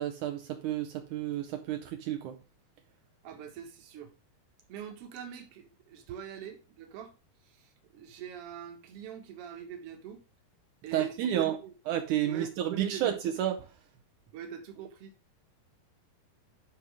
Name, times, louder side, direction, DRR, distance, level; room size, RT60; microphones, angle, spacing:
voice 1, 0.0-2.4 10.9-11.6 11.9-13.6, right 11 dB, 85° right, 1.7 m, -31 dB
voice 2, 3.2-4.2 4.7-7.1 7.4-10.2 10.8-11.7 12.2-13.2 14.3-15.1, right 9 dB, 55° right, 1.7 m, -43 dB
12.0 x 5.0 x 3.5 m
omnidirectional pair, 4.6 m